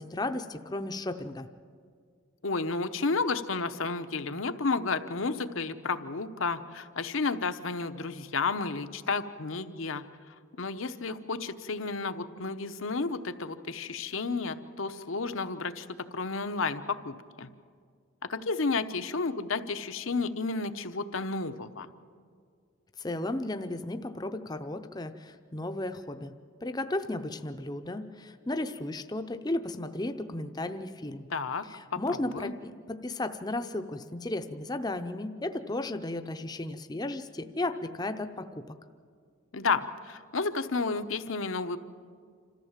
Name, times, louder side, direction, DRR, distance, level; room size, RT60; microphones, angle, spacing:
voice 1, 0.0-1.5 23.0-26.3 26.6-31.3 31.7-38.7, left 2 dB, 20° left, 8 dB, 0.6 m, -34 dB
voice 2, 2.4-10.0 10.6-15.9 16.1-17.5 18.3-21.9 31.3-31.6 31.9-32.0 32.3-32.5 39.5-41.8, left 4 dB, 75° left, 9 dB, 1.0 m, -31 dB
27.0 x 14.5 x 7.4 m, 2.2 s
head